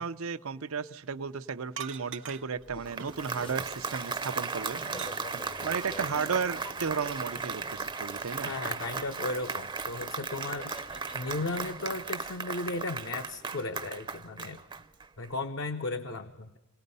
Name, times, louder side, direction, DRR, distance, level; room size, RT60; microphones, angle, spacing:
voice 1, 0.0-8.5, right 5 dB, 90° right, 11 dB, 0.7 m, -34 dB
sound 1, 1.8-2.6 3.0-4.0 4.4-5.5 6.6-6.7, right 7 dB, 60° right, 0.9 m, -43 dB
sound 2, 2.7-12.1, left 2 dB, 25° left, 0.6 m, -50 dB
Applause, 2.7-15.3, right 4 dB, 25° right, 0.6 m, -36 dB
voice 2, 8.4-10.8 11.1-14.6 15.2-16.5, left 2 dB, 60° left, 6 dB, 0.7 m, -35 dB
27.0 x 18.5 x 5.4 m, 1.1 s
head